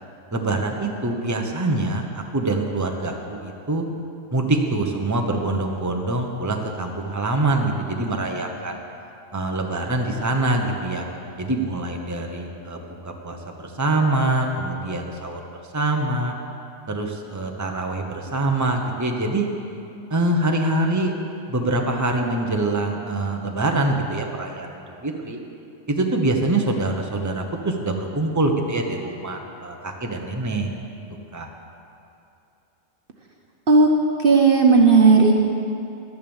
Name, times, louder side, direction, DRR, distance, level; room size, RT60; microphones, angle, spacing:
voice 1, 0.3-3.8 4.3-8.8 9.3-11.0 11.4-15.4 15.7-16.3 16.9-19.5 20.1-21.1 21.5-25.4 25.9-30.7 31.3-31.5, right 2 dB, 15° right, 2 dB, 1.0 m, -24 dB
voice 2, 34.2-35.4, right 4 dB, 50° right, 2 dB, 1.0 m, -14 dB
12.0 x 10.5 x 7.2 m, 2.7 s
omnidirectional pair, 1.3 m